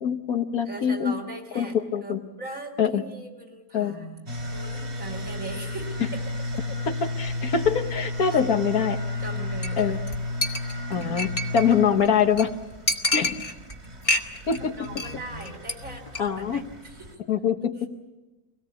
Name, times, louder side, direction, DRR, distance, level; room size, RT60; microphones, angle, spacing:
voice 1, 0.0-1.1 1.6-2.2 2.8-3.0 3.7-3.9 7.2-9.0 9.8-10.0 10.9-11.3 11.5-12.5 13.1-13.4 14.5-14.7 16.2-16.6 17.3-17.9, left 7 dB, 80° left, 5 dB, 1.8 m, -23 dB
voice 2, 0.7-6.2 6.5-6.8 8.3-8.6 9.2-10.0 13.5-13.6 14.6-17.2, right 2 dB, 60° right, 0 dB, 3.7 m, -39 dB
sound 1, 4.2-17.1, left 2 dB, 45° right, 3.2 m, -33 dB
Chink clink, 9.6-9.8 10.1-10.2 10.4-11.7 12.1-12.2 12.4-12.5 12.9-13.7 14.0-14.6 14.8-15.1 15.4-15.7 16.1-16.2, left 1 dB, 25° left, 1.4 m, -27 dB
24.5 x 18.0 x 8.5 m, 1.1 s
omnidirectional pair, 1.5 m